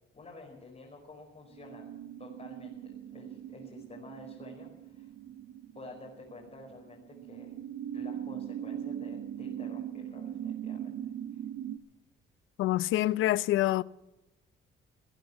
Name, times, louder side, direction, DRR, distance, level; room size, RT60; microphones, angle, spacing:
voice 1, 0.1-1.9 2.2-5.1 5.7-7.5 7.9-11.5, left 3 dB, 35° left, 5.1 m, -50 dB
sound 1, 1.5-11.8, right 10 dB, 90° right, 1.2 m, -40 dB
voice 2, 12.6-13.8, left 15 dB, 85° left, 0.6 m, -26 dB
19.0 x 10.5 x 7.2 m
cardioid pair, 90°, 20 cm